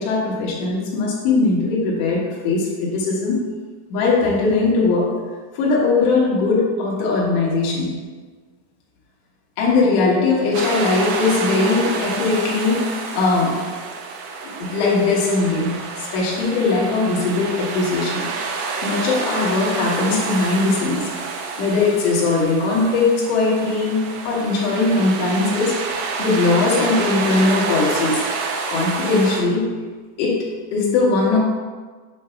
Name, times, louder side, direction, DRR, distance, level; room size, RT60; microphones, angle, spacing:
voice 1, 0.0-3.5 3.9-5.2 5.5-8.0 9.6-13.7 14.4-18.3 18.8-21.1 21.6-25.8 26.2-28.2 28.7-29.7 30.2-31.4, left 3 dB, 70° left, -4 dB, 3.1 m, -20 dB
sound 1, 10.5-29.4, right 4 dB, 80° right, 3.0 m, -28 dB
7.7 x 2.8 x 5.6 m, 1.4 s
omnidirectional pair, 5.8 m